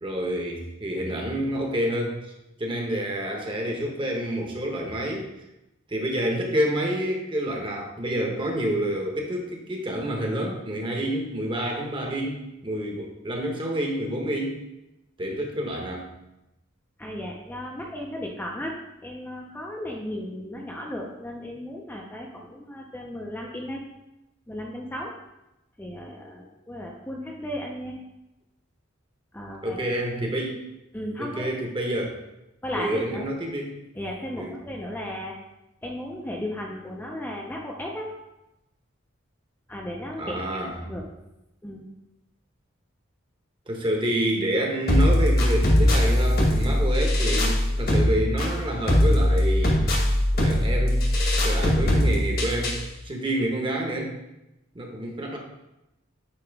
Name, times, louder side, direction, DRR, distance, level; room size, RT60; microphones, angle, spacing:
voice 1, 0.0-2.3 2.6-5.3 5.9-14.6 15.2-16.1 29.6-30.6 31.2-32.2 32.7-33.8 34.4-34.5 40.2-40.7 43.7-50.0 50.3-51.0 51.4-52.8 53.0-54.1 54.7-55.4, right 1 dB, 25° right, 1 dB, 1.0 m, -28 dB
voice 2, 17.0-23.8 24.5-25.1 25.8-27.9 29.3-30.0 30.9-31.5 32.6-33.2 33.9-35.3 35.8-38.1 39.7-40.4 40.7-41.0 41.6-41.8, left 1 dB, 10° left, -1 dB, 0.5 m, -35 dB
sound 1, 44.9-52.9, left 1 dB, 45° left, 1.2 m, -21 dB
8.6 x 3.0 x 4.6 m, 0.92 s
head